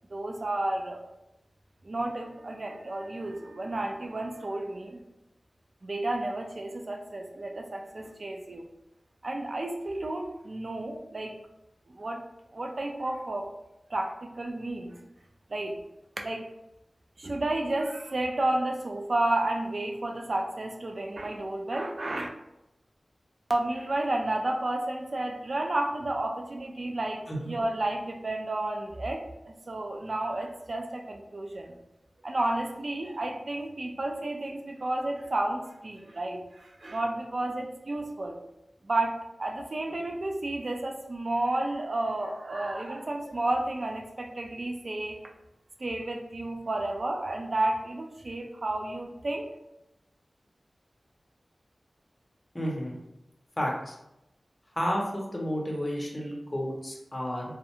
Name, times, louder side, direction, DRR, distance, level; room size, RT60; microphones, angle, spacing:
voice 1, 0.1-1.0 1.8-5.0 5.8-8.6 9.2-11.3 11.9-12.2 12.5-13.5 13.9-15.0 15.5-15.8 16.2-16.5 17.2-22.3 23.5-31.7 32.2-38.4 38.8-45.2 45.8-49.5, right 2 dB, 55° right, 1 dB, 0.4 m, -31 dB
voice 2, 52.5-53.0 53.6-54.0 54.8-57.4, equal, 25° left, -2 dB, 0.6 m, -31 dB
2.4 x 2.1 x 2.9 m, 0.89 s
wide cardioid pair, 85°, 0 cm